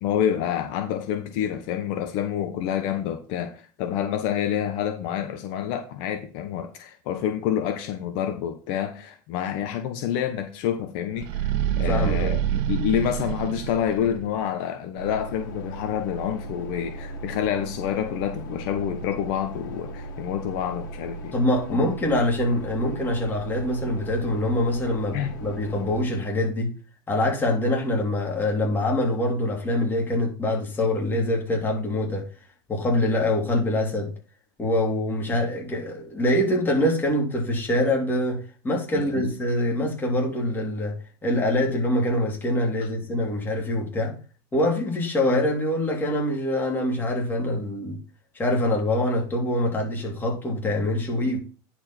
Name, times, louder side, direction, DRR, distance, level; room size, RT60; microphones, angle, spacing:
voice 1, 0.0-21.3 21.7-21.8 25.1-25.3 38.9-39.3, left 9 dB, 60° left, 1.2 m, -28 dB
sound 1, 11.1-14.4, right 10 dB, 60° right, 0.7 m, -27 dB
voice 2, 11.8-12.4 21.3-26.7 27.1-32.2 32.7-34.1 34.6-40.9 41.2-44.1 44.5-48.0 48.4-51.4, left 1 dB, 20° left, 3.1 m, -24 dB
sound 2, 15.0-26.0, right 2 dB, 80° left, 2.4 m, -37 dB
10.0 x 4.5 x 4.5 m
supercardioid pair, 120°, 11 cm